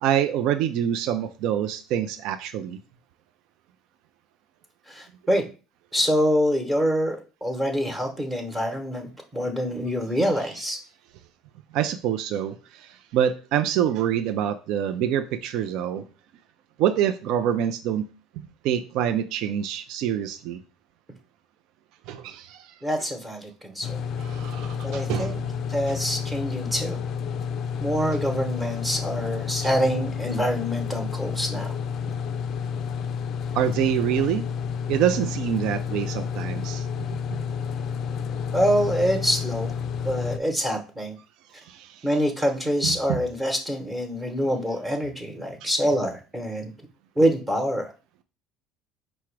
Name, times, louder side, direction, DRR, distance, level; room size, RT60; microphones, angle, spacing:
voice 1, 0.0-2.8 11.7-16.1 16.8-18.1 18.4-20.6 22.1-22.7 24.2-25.5 33.5-34.5 34.9-36.9 37.3-37.4 41.7-42.0 42.8-43.2 45.6-45.7, right 10 dB, 70° right, 9 dB, 0.4 m, -26 dB
voice 2, 4.9-5.4 5.9-10.8 22.8-24.0 24.8-25.4 25.7-27.0 27.8-31.7 38.5-39.7 40.0-41.1 42.0-46.7 47.2-47.9, equal, 10° right, 3 dB, 0.9 m, -25 dB
sound 1, 23.8-40.4, left 6 dB, 55° left, 0.3 m, -30 dB
4.6 x 2.0 x 4.5 m, 0.34 s
supercardioid pair, 85°, 0 cm